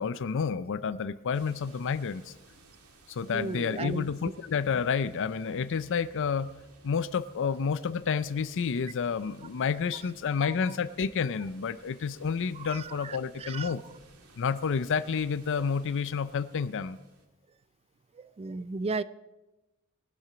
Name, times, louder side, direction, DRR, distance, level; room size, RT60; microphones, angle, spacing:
voice 1, 0.0-2.3 3.1-6.5 6.8-13.8 14.4-17.0, left 6 dB, 60° left, 15 dB, 0.5 m, -30 dB
sound 1, 1.3-17.3, right 3 dB, 85° right, 1.9 m, -58 dB
voice 2, 3.3-4.1 10.7-10.8 12.6-13.7 18.2-19.0, right 3 dB, 25° right, 16 dB, 0.3 m, -35 dB
20.0 x 7.5 x 5.0 m, 1.0 s
head